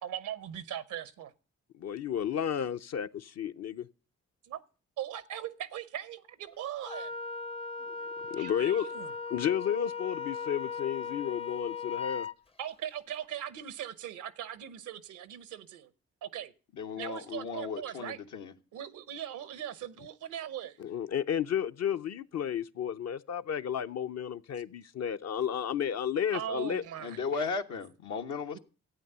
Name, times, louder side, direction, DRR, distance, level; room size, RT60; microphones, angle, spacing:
voice 1, 0.0-1.3 4.5-4.6 5.0-7.1 8.4-9.1 12.6-15.9 16.2-16.5 17.0-18.2 18.7-20.8 26.3-27.5, right 10 dB, 90° right, 0.8 m, -40 dB
voice 2, 1.8-3.9 7.9-8.0 8.3-8.9 9.3-12.3 20.8-26.8, left 9 dB, 60° left, 0.7 m, -32 dB
Wind instrument woodwind instrument, 6.8-12.3, left 5 dB, 20° left, 0.5 m, -38 dB
voice 3, 16.7-18.5 27.0-28.6, left 5 dB, 80° left, 1.2 m, -36 dB
12.5 x 8.7 x 6.7 m
supercardioid pair, 55°, 29 cm